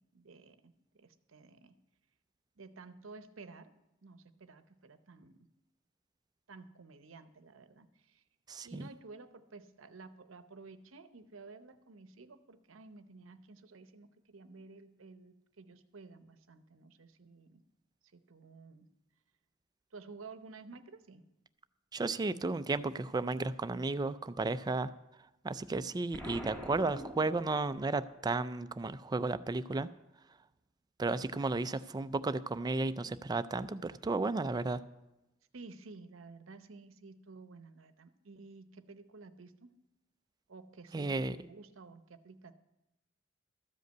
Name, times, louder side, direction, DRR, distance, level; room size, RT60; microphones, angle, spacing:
voice 1, 0.1-1.7 2.6-3.7 4.0-5.5 6.5-8.2 8.6-17.6 18.1-18.9 19.9-21.2 35.5-39.7 40.5-42.5, right 3 dB, 80° right, 11 dB, 0.8 m, -53 dB
voice 2, 8.5-8.9 21.9-24.9 25.4-29.9 31.0-34.8 40.9-41.4, right 3 dB, 20° right, 13 dB, 0.3 m, -33 dB
Explosion, 26.1-28.0, equal, 10° left, 2.2 m, -45 dB
13.5 x 5.3 x 8.0 m, 0.96 s
head